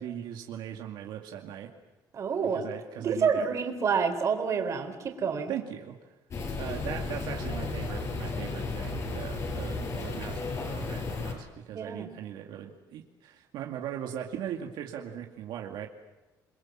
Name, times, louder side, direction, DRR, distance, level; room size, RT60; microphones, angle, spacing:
voice 1, 0.0-1.7 2.5-3.6 5.5-6.2 6.6-15.9, right 10 dB, 80° right, 2 dB, 2.3 m, -39 dB
voice 2, 2.1-2.6 3.0-5.5 11.7-12.1, right 6 dB, 45° right, 6 dB, 4.1 m, -28 dB
sound 1, 6.3-11.3, left 3 dB, 40° left, 6.4 m, -34 dB
29.0 x 22.0 x 7.5 m, 1.1 s
cardioid pair, 135°, 8 cm